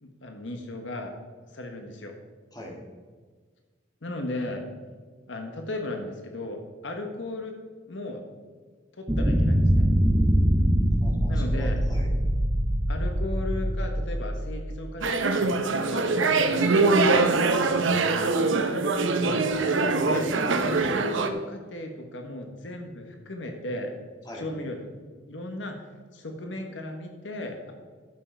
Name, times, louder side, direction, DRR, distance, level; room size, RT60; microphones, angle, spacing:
voice 1, 0.0-1.1 1.5-2.1 4.0-4.6 5.3-7.5 7.9-8.2 9.0-9.9 11.3-11.8 12.9-17.0 19.2-19.4 19.8-20.3 20.6-23.9 24.3-24.8 25.3-25.8 26.1-27.7, left 1 dB, 75° left, 4 dB, 1.3 m, -36 dB
sound 1, 9.1-14.8, equal, 15° right, 0.9 m, -23 dB
voice 2, 11.0-12.1 17.6-18.3 24.3-24.5, equal, 20° left, -1 dB, 2.2 m, -41 dB
sound 2, 15.0-21.3, right 3 dB, 90° right, 0.9 m, -23 dB
12.0 x 7.2 x 4.6 m, 1.5 s
head